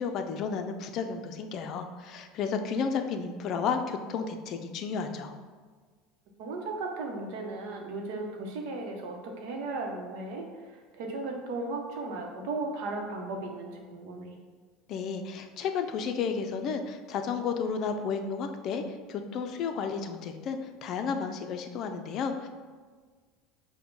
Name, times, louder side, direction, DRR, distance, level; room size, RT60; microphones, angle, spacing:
voice 1, 0.0-5.3 14.9-22.5, left 5 dB, 50° left, 7 dB, 0.4 m, -32 dB
voice 2, 6.4-14.4, right 3 dB, 75° right, 2 dB, 0.8 m, -36 dB
5.0 x 2.2 x 4.6 m, 1.5 s
supercardioid pair, 115°, 0 cm